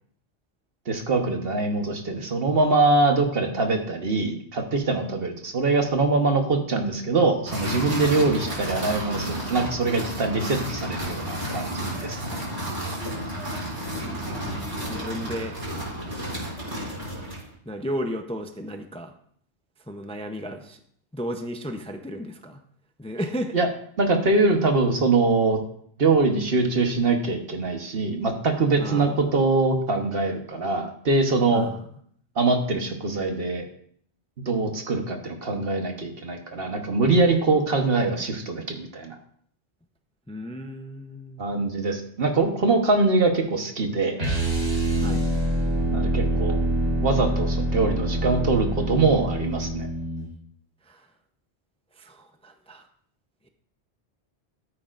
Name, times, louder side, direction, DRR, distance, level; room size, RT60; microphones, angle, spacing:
voice 1, 0.9-12.4 23.5-23.7 24.0-25.6 26.0-31.7 32.4-33.6 34.5-39.1 41.4-44.2 45.9-46.6 47.0-49.9, right 3 dB, 60° right, 4 dB, 1.4 m, -23 dB
sound 1, 7.5-17.5, right 1 dB, 35° right, 5.3 m, -31 dB
voice 2, 14.0-15.6 16.1-16.6 16.8-17.1 17.7-19.1 19.9-20.8 21.1-22.6 23.0-23.6 28.8-29.2 31.5-31.8 40.3-41.7 45.0-45.3 50.9-51.1 52.0-52.8, equal, 5° left, 5 dB, 0.6 m, -34 dB
sound 2, 44.2-50.3, right 1 dB, 85° right, 3.6 m, -25 dB
13.5 x 9.3 x 2.5 m, 0.63 s
omnidirectional pair, 1.1 m